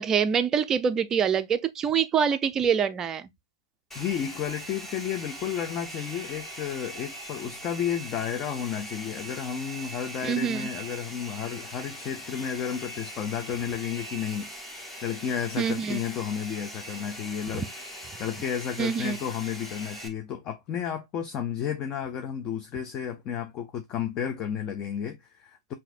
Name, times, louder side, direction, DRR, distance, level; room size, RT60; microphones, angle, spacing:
voice 1, 0.0-3.3 10.2-10.7 15.6-16.0 18.8-19.2, right 7 dB, 20° right, 0.4 m, -25 dB
voice 2, 3.9-14.5 15.0-17.7 18.2-25.7, left 8 dB, 30° left, 0.5 m, -32 dB
Domestic sounds home sounds, 3.9-20.1, right 1 dB, 5° left, 0.9 m, -41 dB
5.7 x 2.6 x 2.5 m
hypercardioid pair, 125°, 3 cm